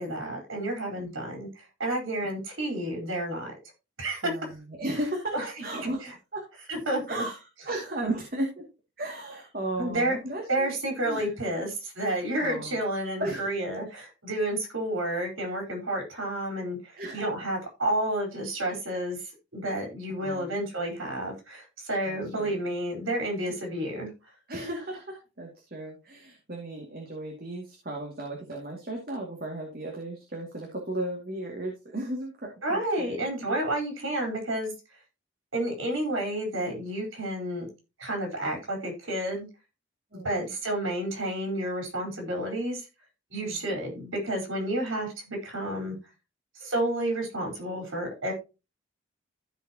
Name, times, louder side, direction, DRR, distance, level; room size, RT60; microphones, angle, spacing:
voice 1, 0.0-3.5 4.0-4.2 5.3-5.4 6.0-6.1 6.7-7.2 9.8-10.2 10.5-16.8 17.1-19.2 19.5-24.1 32.6-34.7 35.5-37.7 38.0-39.5 40.1-42.8 43.3-46.0 46.6-48.3, right 1 dB, 90° right, 2 dB, 4.5 m, -30 dB
voice 2, 1.0-1.3 4.2-6.5 7.1-7.4 7.6-8.6 9.0-10.7 11.1-11.3 12.4-12.8 13.2-13.6 13.9-14.0 17.0-17.2 20.2-20.5 22.0-22.6 24.5-33.3 40.1-40.5 43.4-43.6, right 1 dB, 50° right, 0 dB, 2.4 m, -35 dB
15.0 x 5.1 x 2.9 m, 0.28 s
head